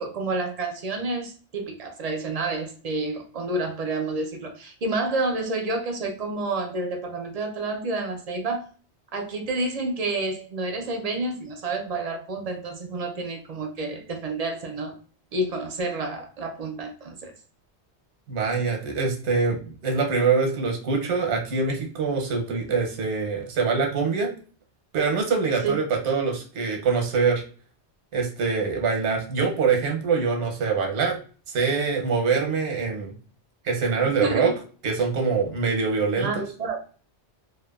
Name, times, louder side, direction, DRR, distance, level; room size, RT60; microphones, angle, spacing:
voice 1, 0.0-8.7 9.1-14.9 15.3-17.3 25.6-25.7 34.2-34.5 36.2-36.8, right 2 dB, 55° right, 0.4 m, -29 dB
voice 2, 18.3-24.3 24.9-27.4 28.1-31.2 31.5-33.1 33.6-34.5 34.8-36.5, right 5 dB, 90° right, 1.0 m, -24 dB
2.7 x 2.3 x 2.2 m
omnidirectional pair, 1.1 m